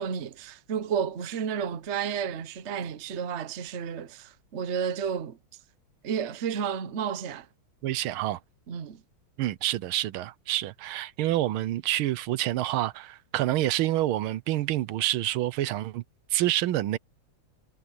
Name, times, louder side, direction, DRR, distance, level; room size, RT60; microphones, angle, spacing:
voice 1, 0.0-5.4 6.0-7.5 8.7-9.0, right 7 dB, 55° right, 0.7 m, -31 dB
voice 2, 7.8-8.4 9.4-16.0 16.3-17.0, right 14 dB, 80° right, 1.5 m, -27 dB
omnidirectional pair, 2.3 m